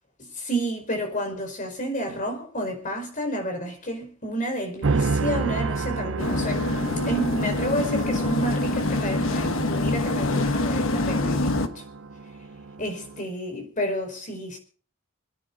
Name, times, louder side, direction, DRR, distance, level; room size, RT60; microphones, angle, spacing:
voice 1, 0.3-6.6 7.0-11.8 12.8-14.6, equal, 40° left, 4.8 m, -30 dB
sound 1, 4.8-13.2, right 4 dB, 70° right, 0.7 m, -31 dB
sound 2, 6.2-11.7, left 2 dB, 70° left, 1.3 m, -25 dB
27.5 x 9.9 x 3.9 m
head